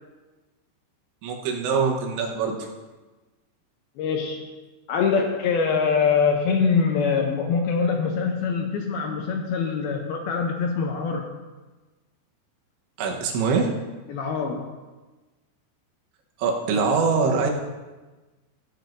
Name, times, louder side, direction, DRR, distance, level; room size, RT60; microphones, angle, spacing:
voice 1, 1.2-2.7 13.0-13.7 16.4-17.5, right 5 dB, 85° right, 1 dB, 3.5 m, -23 dB
voice 2, 4.0-4.5 4.9-11.3 14.1-14.7, left 5 dB, 80° left, 2 dB, 2.3 m, -24 dB
15.5 x 10.5 x 2.6 m, 1.2 s
omnidirectional pair, 5.1 m